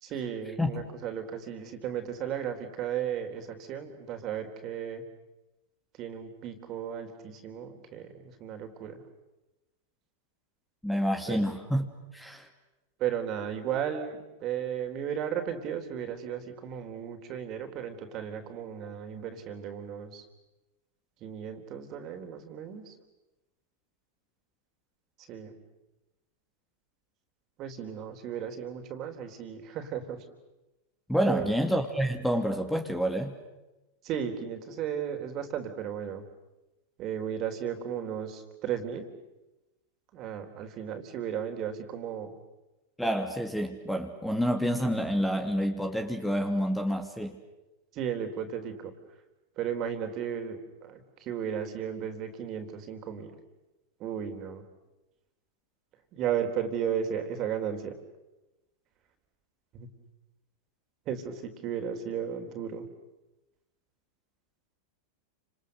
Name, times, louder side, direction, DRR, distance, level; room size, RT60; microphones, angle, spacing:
voice 1, 0.0-5.0 6.0-9.0 11.3-11.4 13.0-20.2 21.2-22.9 25.2-25.6 27.6-30.2 31.2-31.5 34.0-36.2 37.0-39.1 40.1-42.3 47.9-48.9 49.6-53.4 54.0-54.6 56.1-57.9 59.7-59.9 61.1-62.9, right 8 dB, 40° right, 6 dB, 3.9 m, -35 dB
voice 2, 10.8-12.5 31.1-33.3 43.0-47.4, equal, 5° left, 5 dB, 2.5 m, -28 dB
30.0 x 27.5 x 6.7 m, 1.0 s
hypercardioid pair, 95°, 0 cm